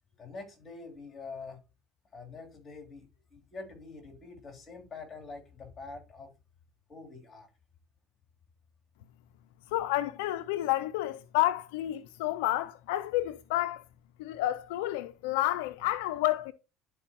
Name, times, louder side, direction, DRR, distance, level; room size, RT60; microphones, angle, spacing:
voice 1, 0.2-1.6 2.1-6.3 6.9-7.5, left 4 dB, 30° left, 3.0 m, -45 dB
voice 2, 9.7-13.8 14.2-16.5, left 15 dB, 85° left, 0.4 m, -30 dB
11.5 x 4.5 x 2.9 m
supercardioid pair, 95°, 0 cm